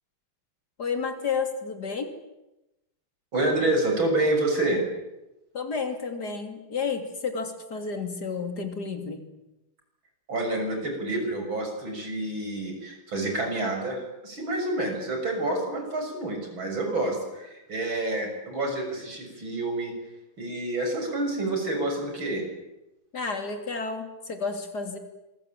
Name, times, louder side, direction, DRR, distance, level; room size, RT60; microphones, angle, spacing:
voice 1, 0.8-2.1 5.5-9.2 23.1-25.0, left 5 dB, 55° left, 6 dB, 3.6 m, -31 dB
voice 2, 3.3-4.8 10.3-19.9 20.4-22.4, right 2 dB, 90° right, 4 dB, 7.2 m, -28 dB
26.5 x 21.5 x 9.1 m, 0.94 s
omnidirectional pair, 2.1 m